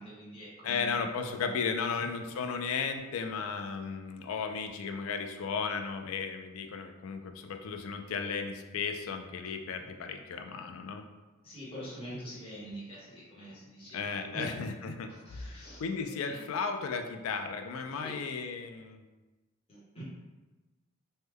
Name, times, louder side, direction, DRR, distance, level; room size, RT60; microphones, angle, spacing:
voice 1, 0.0-1.0 11.4-14.4 15.3-15.8 16.1-16.4 18.0-18.1 19.7-20.0, equal, 25° left, -8 dB, 0.9 m, -45 dB
voice 2, 0.6-11.0 13.9-19.0, left 5 dB, 75° left, 6 dB, 0.3 m, -35 dB
3.1 x 2.1 x 3.4 m, 1.2 s
head